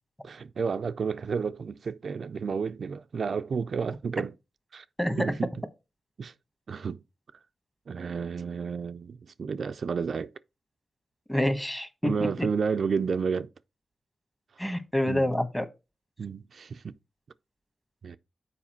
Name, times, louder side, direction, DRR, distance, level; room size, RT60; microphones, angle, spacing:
voice 1, 0.2-4.3 4.7-4.8 5.2-5.5 6.2-6.3 6.7-7.0 7.9-10.3 12.0-13.5 15.1-15.2 16.2-16.9 18.0-18.2, right 5 dB, 65° right, 0.4 m, -31 dB
voice 2, 5.0-5.3 11.3-12.1 12.4-12.5 14.6-15.7, left 1 dB, 10° left, 1.2 m, -27 dB
7.2 x 4.8 x 4.3 m
cardioid pair, 85°, 0 cm